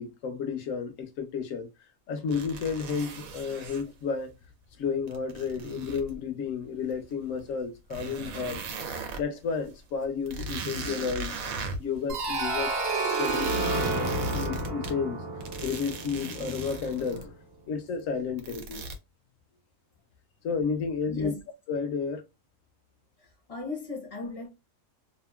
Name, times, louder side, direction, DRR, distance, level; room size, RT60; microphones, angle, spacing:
voice 1, 0.0-1.7 2.1-4.3 4.8-8.6 9.2-11.3 11.8-12.8 13.2-15.2 15.6-17.3 17.7-18.9 20.4-21.3 21.7-22.2, left 5 dB, 75° left, 1.1 m, -32 dB
sound 1, 2.3-3.8 5.1-6.2 6.9-7.0 7.5-7.6 7.9-9.2 9.7-9.8 10.0-12.0 13.3-14.9 15.4-17.3 18.4-19.0, right 2 dB, 90° right, 1.1 m, -37 dB
sound 2, 12.1-16.8, right 3 dB, 55° right, 0.9 m, -30 dB
voice 2, 21.1-21.4 23.2-24.5, left 3 dB, 35° left, 0.6 m, -37 dB
2.9 x 2.5 x 2.2 m
omnidirectional pair, 1.4 m